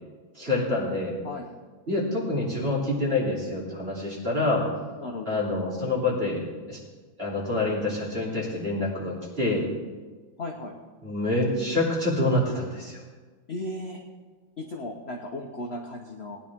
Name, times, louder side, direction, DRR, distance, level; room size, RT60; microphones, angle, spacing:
voice 1, 0.3-1.1 1.9-4.6 5.3-6.4 6.7-6.8 7.2-9.6 11.0-13.0, left 2 dB, 25° right, -5 dB, 3.1 m, -26 dB
voice 2, 10.4-10.7 13.5-14.0 14.6-16.4, left 1 dB, 50° left, 1 dB, 0.8 m, -35 dB
19.0 x 10.0 x 3.6 m, 1.4 s
omnidirectional pair, 2.3 m